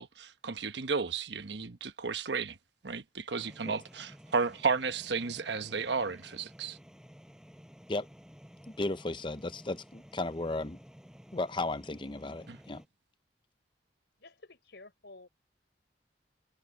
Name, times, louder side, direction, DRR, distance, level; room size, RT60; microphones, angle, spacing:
voice 1, 0.0-2.6 2.8-6.8 12.5-12.6, right 4 dB, 75° right, 1.1 m, -33 dB
sound 1, 3.3-12.9, equal, 5° right, 7.8 m, -54 dB
voice 2, 8.7-10.8 11.3-12.8, left 2 dB, 25° left, 0.7 m, -35 dB
voice 3, 14.2-15.3, left 2 dB, 70° left, 4.1 m, -52 dB
head